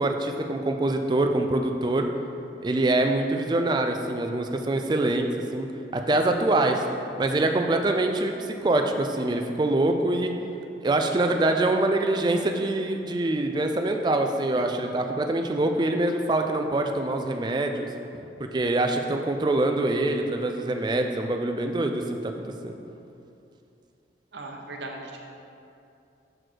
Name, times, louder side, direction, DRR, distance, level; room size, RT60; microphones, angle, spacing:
voice 1, 0.0-2.1 2.6-5.3 5.5-5.7 5.9-6.8 7.2-10.3 10.8-17.9 18.4-22.3 22.6-22.7, right 2 dB, 25° right, 4 dB, 0.3 m, -24 dB
voice 2, 24.3-25.2, right 2 dB, 75° right, 1 dB, 0.8 m, -38 dB
6.4 x 4.1 x 4.5 m, 2.7 s
head